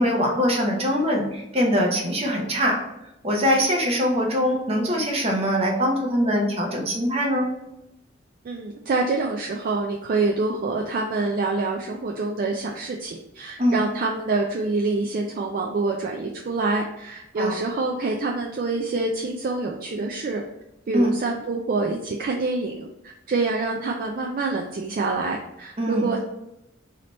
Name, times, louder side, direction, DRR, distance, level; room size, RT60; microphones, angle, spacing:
voice 1, 0.0-2.8 3.2-7.5 13.6-13.8 17.4-17.5 20.9-21.1 25.8-26.1, equal, 30° right, 0 dB, 0.8 m, -22 dB
voice 2, 8.4-20.4 20.9-22.9 23.3-26.2, right 3 dB, 45° right, 1 dB, 0.4 m, -26 dB
3.3 x 2.8 x 3.9 m, 0.88 s
head